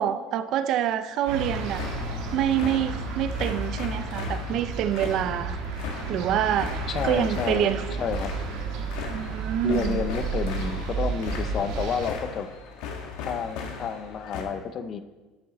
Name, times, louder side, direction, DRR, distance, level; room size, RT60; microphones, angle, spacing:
voice 1, 0.0-1.8 2.3-5.6 6.1-6.8 7.0-7.8 9.1-10.0, right 10 dB, 45° right, 12 dB, 0.5 m, -26 dB
sound 1, 1.2-14.4, left 6 dB, 70° left, 1.4 m, -38 dB
sound 2, 1.3-12.1, right 3 dB, 70° right, 1.5 m, -32 dB
voice 2, 6.9-7.7 8.0-8.3 9.6-12.5 13.2-15.0, left 6 dB, 30° left, 11 dB, 0.5 m, -30 dB
10.5 x 6.7 x 3.9 m, 1.3 s
cardioid pair, 165°, 0 cm